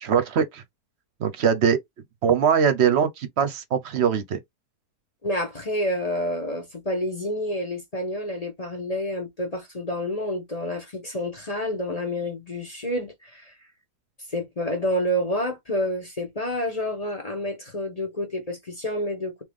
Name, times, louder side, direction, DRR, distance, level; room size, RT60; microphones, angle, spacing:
voice 1, 0.0-0.6 1.2-1.8 2.2-4.4, right 7 dB, 55° right, 0.8 m, -22 dB
voice 2, 5.2-13.5 14.3-19.4, left 1 dB, 30° left, 1.0 m, -29 dB
3.6 x 3.1 x 3.4 m
omnidirectional pair, 1.6 m